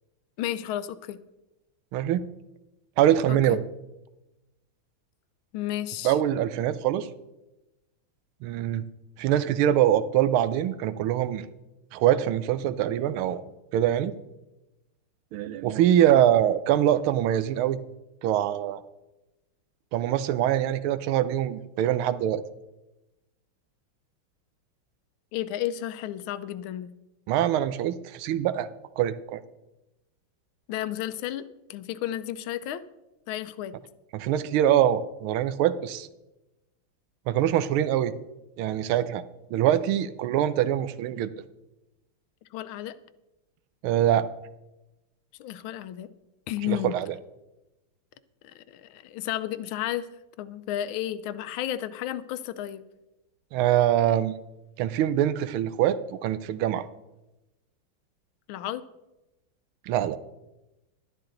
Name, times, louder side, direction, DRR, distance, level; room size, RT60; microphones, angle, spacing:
voice 1, 0.4-1.2 3.3-3.6 5.5-6.1 25.3-26.9 30.7-31.4 31.7-32.8 33.3-33.7 42.5-43.0 45.4-46.1 46.5-46.9 48.4-50.1 50.4-52.8 58.5-58.9, left 12 dB, 80° left, 13 dB, 1.4 m, -32 dB
voice 2, 1.9-2.2 3.0-3.6 6.0-7.1 8.4-8.8 9.2-11.5 11.9-13.4 13.7-14.2 15.3-17.8 18.2-18.8 19.9-22.4 27.3-28.7 29.0-29.4 34.1-36.1 37.3-38.1 38.6-39.2 39.5-41.3 43.8-44.3 46.7-47.2 53.5-54.4 54.8-56.9 59.9-60.2, right 11 dB, 85° right, 14 dB, 1.5 m, -24 dB
12.0 x 11.5 x 3.8 m, 0.98 s
omnidirectional pair, 2.3 m